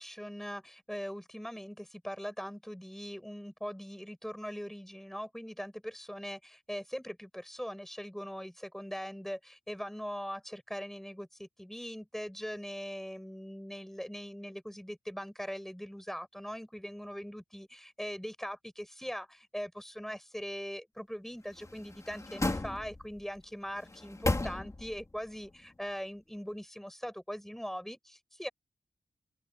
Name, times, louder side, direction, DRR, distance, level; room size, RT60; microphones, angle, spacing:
voice 1, 0.0-28.5, equal, 5° left, 6.3 m, -41 dB
sound 1, 21.5-23.2 23.8-25.1 25.4-25.5, left 2 dB, 25° left, 3.1 m, -35 dB
open air
wide cardioid pair, 90°, 12 cm